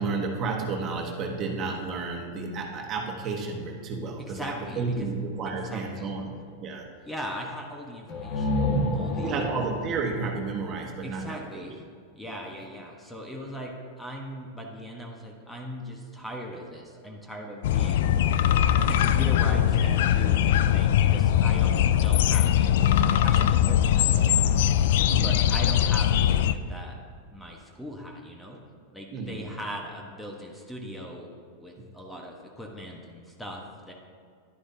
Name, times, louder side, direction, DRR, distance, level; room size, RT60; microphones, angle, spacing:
voice 1, 0.0-6.8 9.2-11.7 25.1-25.4 29.1-29.5 31.8-31.9, right 4 dB, 40° right, 1 dB, 1.4 m, -32 dB
voice 2, 4.2-5.1 5.7-6.1 7.0-9.5 11.0-11.8 12.1-18.1 18.8-24.5 25.1-27.0 27.3-28.6 28.9-31.3 31.6-33.9, equal, 5° left, 0 dB, 1.2 m, -39 dB
sound 1, 8.1-11.8, left 1 dB, 50° left, 1.6 m, -30 dB
sound 2, 17.6-26.5, left 10 dB, 70° left, 0.3 m, -21 dB
11.0 x 9.8 x 2.8 m, 2.2 s
hypercardioid pair, 115°, 0 cm